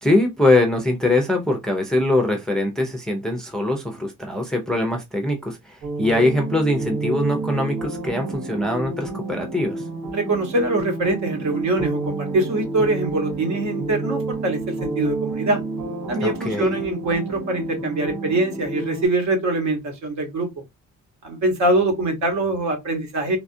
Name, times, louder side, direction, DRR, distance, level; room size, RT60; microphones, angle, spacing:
voice 1, 0.0-9.8 16.2-16.8, left 2 dB, ahead, 0.5 m, -22 dB
sound 1, 5.8-19.1, right 3 dB, 80° right, 2.1 m, -29 dB
voice 2, 10.1-15.6 16.1-20.5 21.2-23.4, right 2 dB, 60° right, 1.2 m, -23 dB
3.4 x 2.3 x 2.6 m
cardioid pair, 150°, 33 cm